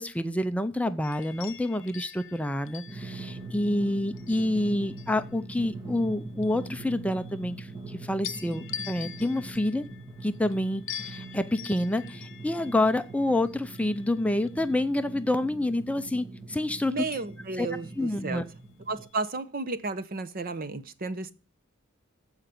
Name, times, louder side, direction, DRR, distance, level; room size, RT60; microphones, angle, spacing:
voice 1, 0.0-9.8 10.2-16.9 17.6-17.7 18.0-18.4, left 1 dB, 5° left, 0.5 m, -28 dB
sound 1, 1.0-5.4 5.9-7.9 8.2-15.2 17.1-18.5 18.9-19.2, left 9 dB, 65° left, 1.0 m, -45 dB
Drum, 2.9-19.0, right 2 dB, 20° right, 1.7 m, -42 dB
voice 2, 16.9-18.4 18.9-21.3, right 3 dB, 45° right, 0.9 m, -33 dB
14.5 x 5.0 x 8.2 m
head